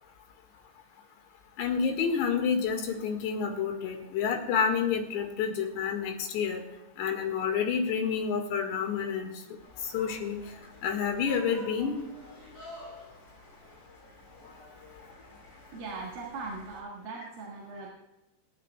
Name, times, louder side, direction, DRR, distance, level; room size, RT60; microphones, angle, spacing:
voice 1, 1.6-6.6 7.0-9.3 9.8-10.4 10.8-12.0, left 6 dB, 85° left, 4 dB, 3.8 m, -29 dB
sound 1, 9.6-16.8, left 2 dB, 15° left, 5.0 m, -49 dB
voice 2, 15.7-17.9, right 3 dB, 65° right, -3 dB, 3.3 m, -39 dB
25.0 x 11.0 x 2.3 m, 1.0 s
omnidirectional pair, 4.9 m